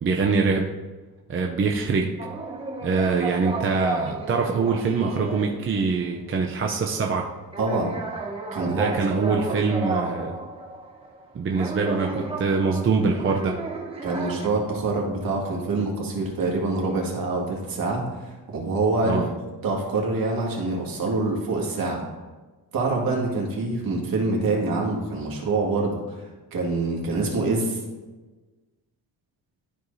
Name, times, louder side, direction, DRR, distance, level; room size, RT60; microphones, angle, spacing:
voice 1, 0.0-0.7 1.3-2.1 2.8-7.3 8.7-10.3 11.3-13.6 19.0-19.3, right 4 dB, 35° right, 0 dB, 0.6 m, -24 dB
sound 1, 2.2-6.0 6.4-6.5 7.5-11.3 11.5-14.5, right 3 dB, 15° right, 0.9 m, -34 dB
voice 2, 7.6-7.9 8.5-8.9 9.8-10.1 14.0-19.2 19.6-22.0 22.7-26.2 26.5-27.8, right 3 dB, 60° right, -1 dB, 2.0 m, -25 dB
12.5 x 4.6 x 2.7 m, 1.3 s
cardioid pair, 145°, 40 cm